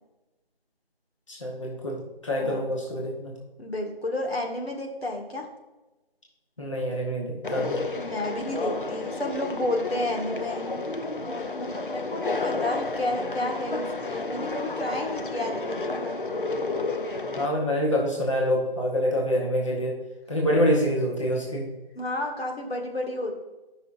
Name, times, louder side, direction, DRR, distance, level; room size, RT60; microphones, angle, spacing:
voice 1, 1.3-3.3 6.6-7.8 17.4-20.0 20.3-21.7, equal, 30° left, -2 dB, 1.0 m, -26 dB
voice 2, 3.6-5.5 7.8-10.7 11.1-16.2 21.9-23.3, left 1 dB, 80° left, 1 dB, 1.9 m, -31 dB
Conversation, 7.4-17.5, left 3 dB, 60° left, 0.6 m, -31 dB
12.5 x 5.6 x 2.5 m, 1.1 s
figure-of-eight pair, 175°, 30 cm